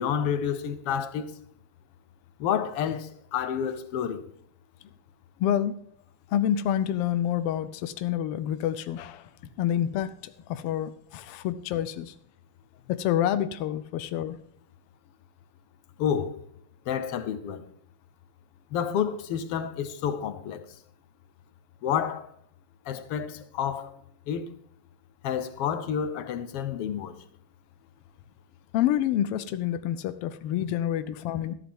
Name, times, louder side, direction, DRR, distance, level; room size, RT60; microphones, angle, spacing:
voice 1, 0.0-1.3 2.4-4.3 16.0-16.4 16.9-17.6 18.7-20.7 21.8-22.3 22.8-23.9 24.3-24.5 25.2-27.3, left 8 dB, 65° left, 1.7 m, -29 dB
voice 2, 5.4-5.7 6.3-9.2 9.6-12.1 12.9-14.4 28.7-31.5, left 11 dB, 85° left, 1.3 m, -28 dB
13.5 x 11.5 x 3.6 m
omnidirectional pair, 3.3 m